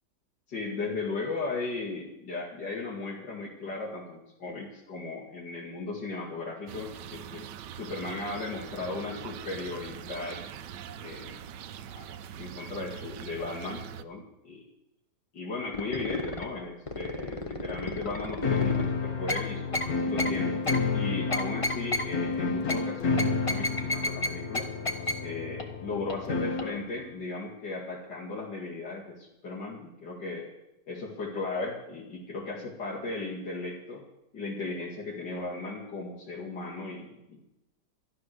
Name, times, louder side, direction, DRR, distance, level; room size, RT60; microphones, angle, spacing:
voice 1, 0.5-7.4 7.7-10.4 11.0-11.4 11.9-12.1 12.4-14.7 15.3-20.5 20.9-24.7 25.2-30.5 30.9-34.0 34.3-37.4, left 3 dB, 90° left, -5 dB, 2.8 m, -36 dB
sound 1, 6.7-14.0, right 9 dB, 80° right, 1.3 m, -43 dB
sound 2, 15.7-16.4 16.9-18.9 19.3-19.4 19.7-19.9 20.2-20.3 20.7-20.8 21.3-22.0 22.7-22.8 23.2-24.3 24.5-24.6 24.8-25.1 25.6-25.7 26.1-26.2 26.6-26.7, left 2 dB, 20° left, 1.1 m, -30 dB
sound 3, 18.4-26.8, left 4 dB, 60° left, 1.7 m, -30 dB
12.5 x 12.5 x 6.5 m, 0.91 s
omnidirectional pair, 1.8 m